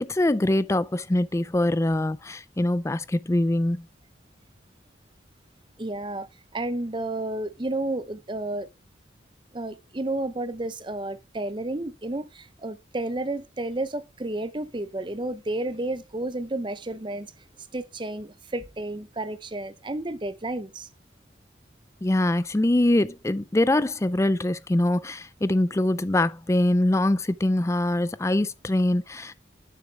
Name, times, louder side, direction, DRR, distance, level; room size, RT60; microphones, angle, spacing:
voice 1, 0.0-3.9 22.0-29.3, left 1 dB, 15° left, 0.4 m, -23 dB
voice 2, 5.8-8.7 9.5-17.3 17.7-20.9, right 2 dB, 25° right, 0.6 m, -31 dB
9.2 x 7.1 x 3.3 m
head